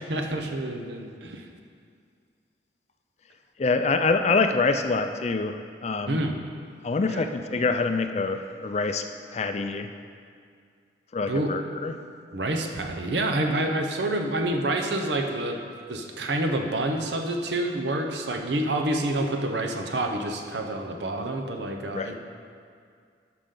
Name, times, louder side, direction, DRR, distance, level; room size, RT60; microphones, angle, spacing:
voice 1, 0.1-1.4 6.1-6.4 7.1-7.2 11.3-11.5 12.3-15.6 15.9-22.2, right 1 dB, 75° right, 4 dB, 0.8 m, -28 dB
voice 2, 3.6-6.2 6.8-9.1 9.3-9.9 11.1-11.9 21.9-22.2, left 3 dB, 35° left, 7 dB, 0.4 m, -25 dB
11.5 x 5.8 x 3.8 m, 2.2 s
head